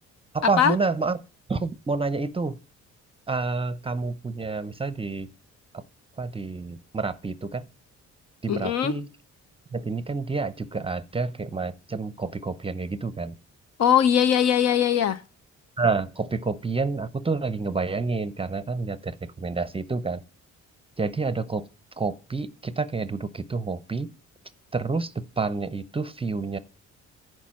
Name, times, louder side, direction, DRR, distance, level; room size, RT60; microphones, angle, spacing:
voice 1, 0.3-1.2 1.5-2.6 3.3-5.3 5.7-5.8 6.2-7.6 8.4-9.1 9.7-13.3 15.8-20.2 21.0-21.7 22.0-24.1 24.7-26.6, right 4 dB, 20° right, 0.6 m, -28 dB
voice 2, 8.5-9.0 13.8-15.2, left 9 dB, 60° left, 0.8 m, -21 dB
10.5 x 4.7 x 7.5 m
cardioid pair, 90°, 30 cm